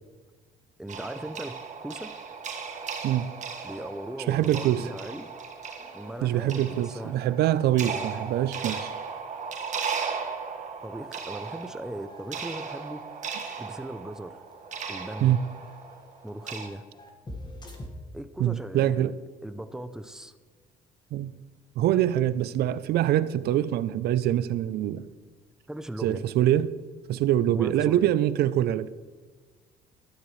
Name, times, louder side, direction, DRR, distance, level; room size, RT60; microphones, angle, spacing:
voice 1, 0.8-2.1 3.6-5.3 5.9-7.1 7.9-8.1 10.8-14.4 14.9-15.4 16.2-16.8 18.1-19.1 19.4-20.3 25.7-26.2 27.5-28.1, right 1 dB, 5° right, 0.6 m, -38 dB
sound 1, 0.9-16.7, right 6 dB, 45° right, 1.7 m, -37 dB
sound 2, 2.8-4.2 4.6-4.8 5.0-5.1 5.8-9.8 10.1-10.2 11.5-17.9, left 1 dB, 25° left, 1.8 m, -50 dB
voice 2, 4.3-4.9 6.2-8.9 15.2-15.4 18.4-19.1 21.1-21.3 21.8-25.0 26.0-26.7 27.1-28.9, right 12 dB, 70° right, 0.6 m, -24 dB
12.5 x 12.0 x 3.3 m
cardioid pair, 110°, 17 cm